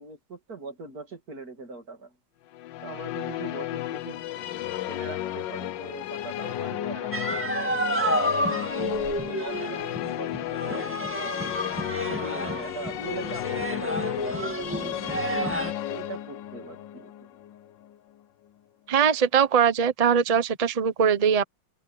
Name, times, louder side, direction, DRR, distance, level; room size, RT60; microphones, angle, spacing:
voice 1, 0.0-2.1 2.8-4.2 4.9-11.6 12.1-15.2 15.9-17.3, right 3 dB, 45° right, 3.1 m, -41 dB
Musical instrument, 2.5-18.0, left 13 dB, 70° left, 1.3 m, -33 dB
sound 1, 7.1-15.7, equal, 5° right, 1.8 m, -30 dB
voice 2, 18.9-21.4, right 7 dB, 75° right, 0.3 m, -21 dB
omnidirectional pair, 2.3 m